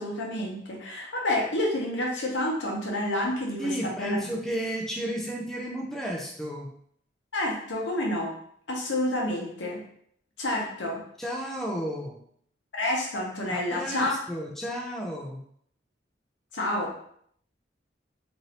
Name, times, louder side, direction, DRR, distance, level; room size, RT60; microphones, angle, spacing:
voice 1, 0.0-4.2 7.3-8.4 8.7-9.8 10.4-11.0 12.7-14.1 16.5-16.9, left 1 dB, 85° left, -1 dB, 0.8 m, -29 dB
voice 2, 3.6-6.7 11.2-12.2 13.5-15.4, equal, ahead, -2 dB, 0.4 m, -32 dB
3.1 x 2.6 x 2.8 m, 0.65 s
head